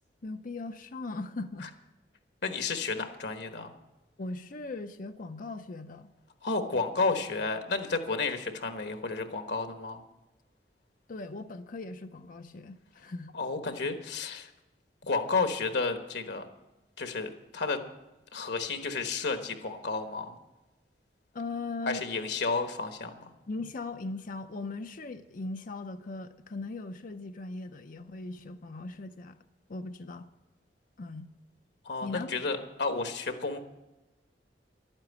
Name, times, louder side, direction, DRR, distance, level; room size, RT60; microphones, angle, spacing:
voice 1, 0.2-1.7 4.2-6.1 6.7-6.8 11.1-13.3 21.3-22.0 23.5-29.4 29.7-30.3 31.0-31.3 32.0-32.3, left 3 dB, 50° left, 8 dB, 0.6 m, -39 dB
voice 2, 2.4-3.7 6.4-10.0 13.3-14.5 15.1-16.4 17.0-17.8 18.3-20.4 21.9-23.3 31.8-33.6, left 4 dB, 70° left, 7 dB, 1.3 m, -31 dB
12.0 x 9.0 x 8.2 m, 1.0 s
head